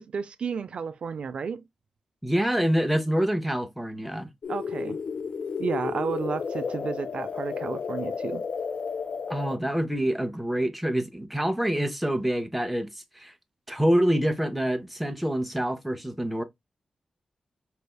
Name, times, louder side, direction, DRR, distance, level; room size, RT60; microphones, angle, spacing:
voice 1, 0.0-1.6 4.5-5.0 5.6-8.4, right 6 dB, 65° right, 0.4 m, -32 dB
voice 2, 2.2-4.3 9.3-12.9 13.1-13.3 13.7-16.4, right 1 dB, ahead, 0.6 m, -26 dB
sound 1, 4.4-9.6, left 5 dB, 70° left, 0.5 m, -32 dB
4.3 x 3.4 x 2.2 m
wide cardioid pair, 145°, 2 cm